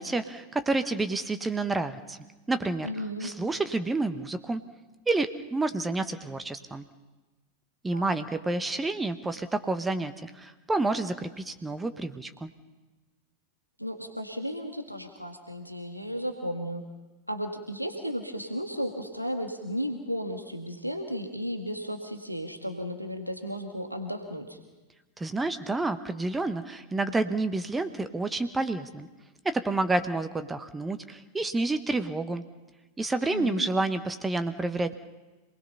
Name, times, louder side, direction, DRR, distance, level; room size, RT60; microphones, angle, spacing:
voice 1, 0.0-2.2 2.5-2.9 3.2-4.6 5.1-6.8 7.8-12.5 25.2-29.1 29.4-32.4 33.0-35.0, right 2 dB, 10° right, 9 dB, 1.1 m, -29 dB
voice 2, 2.8-3.3 7.9-8.2 13.8-16.8 17.3-24.6 33.2-33.7, equal, 90° right, 4 dB, 1.8 m, -34 dB
27.5 x 20.0 x 5.6 m, 1.2 s
figure-of-eight pair, 90°, 0 cm